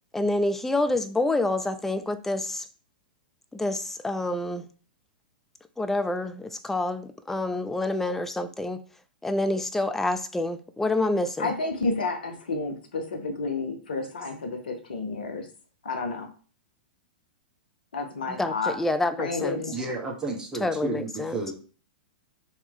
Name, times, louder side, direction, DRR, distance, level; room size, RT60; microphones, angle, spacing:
voice 1, 0.1-2.6 3.5-4.7 5.8-8.8 9.2-11.5 18.3-19.6 20.6-21.4, left 2 dB, 5° left, 0.3 m, -27 dB
voice 2, 11.4-15.5 15.8-16.3 17.9-18.8 19.2-19.8, left 3 dB, 70° left, 0.7 m, -30 dB
voice 3, 19.7-21.5, right 3 dB, 10° right, 0.9 m, -32 dB
2.9 x 2.7 x 3.5 m
figure-of-eight pair, 105°, 5 cm